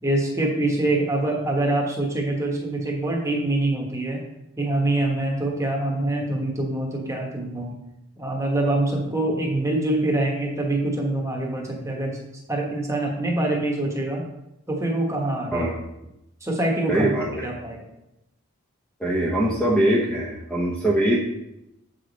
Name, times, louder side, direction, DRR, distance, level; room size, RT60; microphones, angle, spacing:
voice 1, 0.0-4.2 4.6-7.7 8.2-12.2 12.5-14.2 14.7-15.7 16.4-17.1 17.4-17.8, right 2 dB, 15° right, -1 dB, 1.2 m, -25 dB
voice 2, 16.9-17.5 19.0-21.2, right 1 dB, 5° left, -4 dB, 0.8 m, -22 dB
7.3 x 4.9 x 4.1 m, 0.87 s
head